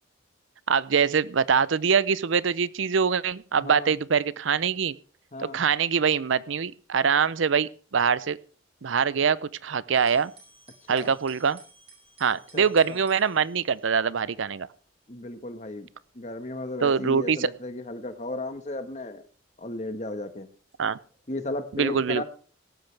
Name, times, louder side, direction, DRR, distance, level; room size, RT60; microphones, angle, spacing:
voice 1, 0.7-5.0 5.4-8.4 8.8-10.3 10.9-11.6 12.2-14.7 16.8-17.5 20.8-21.0 21.7-22.2, right 6 dB, 80° right, 19 dB, 0.6 m, -24 dB
voice 2, 3.6-3.9 5.3-5.6 10.9-11.1 12.5-13.0 15.1-15.9 16.1-19.2 19.6-20.5 21.3-22.2, left 2 dB, 35° left, 9 dB, 1.4 m, -35 dB
sound 1, 9.9-20.1 20.7-21.2, right 3 dB, 30° right, 5.8 m, -58 dB
17.5 x 13.5 x 3.4 m, 0.40 s
head